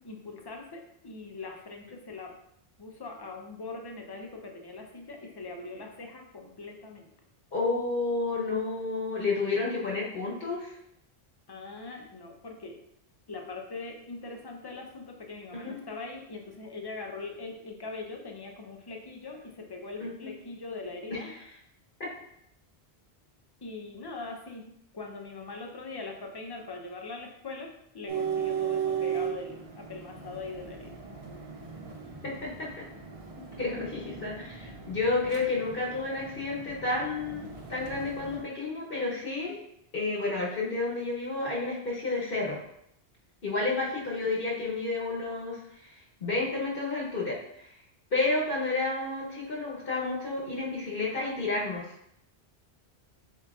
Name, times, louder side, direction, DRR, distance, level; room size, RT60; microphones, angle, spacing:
voice 1, 0.0-2.3 2.8-7.1 11.5-12.8 13.3-21.3 23.6-24.7 24.9-31.0 43.5-43.7, left 3 dB, 30° left, 2 dB, 0.5 m, -41 dB
voice 2, 7.5-10.8 15.5-15.8 20.0-20.3 21.1-21.2 22.0-22.1 32.2-32.8 33.6-39.6 39.9-42.6 43.4-47.7 48.1-52.1, left 3 dB, 60° left, -4 dB, 1.1 m, -31 dB
sound 1, 28.1-38.4, right 8 dB, 40° right, 0.6 m, -37 dB
7.5 x 2.7 x 2.3 m, 0.75 s
omnidirectional pair, 1.1 m